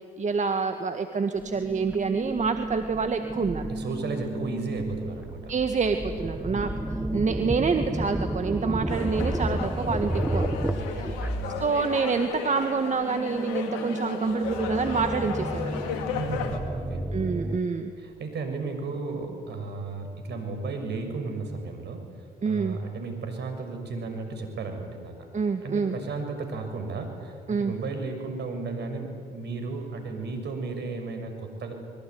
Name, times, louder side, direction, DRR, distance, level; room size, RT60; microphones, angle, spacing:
voice 1, 0.2-3.7 5.5-6.7 7.1-10.4 10.8-10.9 11.6-15.9 17.1-17.9 22.4-22.8 25.3-26.0 27.5-27.7, right 5 dB, 35° right, 7 dB, 1.9 m, -27 dB
sound 1, 1.4-12.1 12.4-17.6, right 1 dB, 10° right, 1.6 m, -32 dB
voice 2, 3.6-5.5 6.4-6.8 10.5-11.7 16.0-17.1 18.0-22.1 22.4-25.3 25.6-31.7, right 3 dB, 55° right, 6 dB, 6.6 m, -34 dB
sound 2, 8.9-16.6, left 7 dB, 80° left, 3.0 m, -35 dB
25.5 x 22.0 x 9.6 m, 2.2 s
hypercardioid pair, 60°, 20 cm